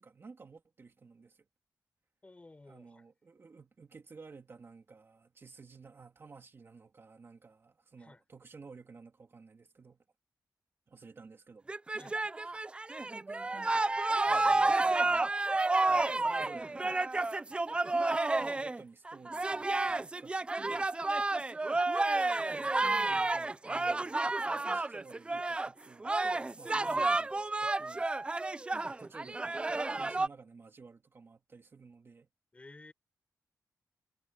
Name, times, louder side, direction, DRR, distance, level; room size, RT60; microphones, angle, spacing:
voice 1, 0.0-1.5 2.7-10.0 10.9-11.7 12.6-12.7 13.1-15.3 15.9-16.9 18.3-20.9 21.3-21.9 22.4-28.1 28.7-32.3, right 4 dB, 35° right, 2.4 m, -54 dB
voice 2, 2.2-3.0 8.0-8.2 12.0-12.3 26.8-27.1 32.5-32.9, left 2 dB, 20° left, 4.3 m, -54 dB
sound 1, 11.7-25.7 26.0-30.3, right 2 dB, 15° right, 0.4 m, -31 dB
wide cardioid pair, 170°, 7 cm